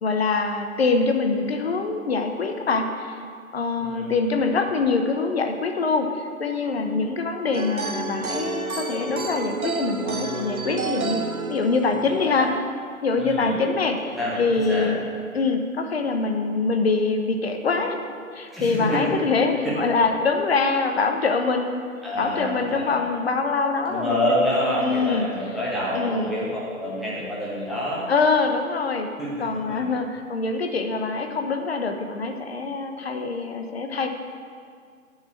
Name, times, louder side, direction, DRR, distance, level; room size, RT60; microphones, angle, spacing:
voice 1, 0.0-3.2 3.5-12.5 13.0-14.1 14.4-15.0 15.3-18.0 18.3-21.9 22.2-24.2 24.8-25.3 25.9-26.3 28.1-29.1 29.4-34.1, left 4 dB, 45° left, 5 dB, 1.2 m, -24 dB
voice 2, 3.8-4.3 12.0-12.5 13.2-13.5 14.2-14.9 18.5-19.1 19.6-19.7 22.0-23.0 23.9-28.1 29.2-29.9, equal, ahead, -10 dB, 1.4 m, -27 dB
sound 1, 7.5-12.6, right 4 dB, 80° right, 0.9 m, -30 dB
9.7 x 6.6 x 7.6 m, 2.1 s
figure-of-eight pair, 140°, 42 cm